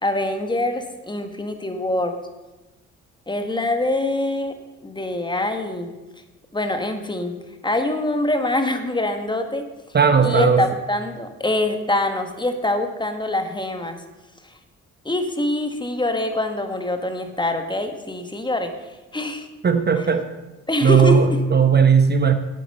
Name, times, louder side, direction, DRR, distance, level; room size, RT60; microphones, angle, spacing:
voice 1, 0.0-2.1 3.3-4.5 4.8-5.9 6.5-7.3 7.6-10.0 10.2-14.0 14.4-14.6 15.0-18.7 19.1-19.5 20.0-20.1 20.7-21.4, left 1 dB, 15° left, 6 dB, 1.4 m, -24 dB
voice 2, 9.9-10.6 19.6-20.2 20.8-22.3, right 6 dB, 35° right, 8 dB, 0.9 m, -16 dB
11.5 x 8.3 x 5.5 m, 1.1 s
cardioid pair, 90°, 30 cm